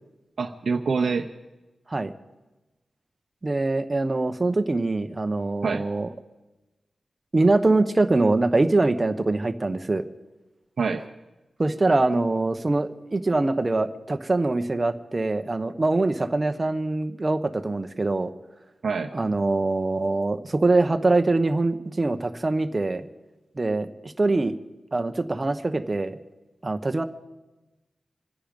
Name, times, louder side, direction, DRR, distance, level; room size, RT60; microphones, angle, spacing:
voice 1, 0.4-1.3 5.6-5.8 10.8-11.0 18.8-19.1, right 5 dB, 65° right, 3 dB, 0.8 m, -25 dB
voice 2, 3.4-6.1 7.3-10.0 11.6-18.3 19.1-23.1 23.6-24.6 24.9-26.2 26.6-27.0, right 2 dB, 30° right, 8 dB, 1.0 m, -23 dB
26.0 x 10.0 x 5.3 m, 1.1 s
wide cardioid pair, 110°, 0 cm